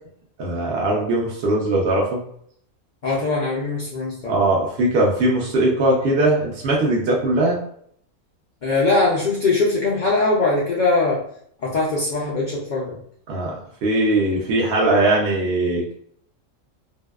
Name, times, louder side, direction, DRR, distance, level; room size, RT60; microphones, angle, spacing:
voice 1, 0.4-2.2 4.3-7.6 13.3-13.5 13.8-15.9, right 1 dB, 60° right, -3 dB, 0.7 m, -20 dB
voice 2, 3.0-4.4 8.6-11.2 11.6-13.0, left 3 dB, 80° left, -4 dB, 0.4 m, -21 dB
2.6 x 2.2 x 2.2 m, 0.65 s
omnidirectional pair, 1.4 m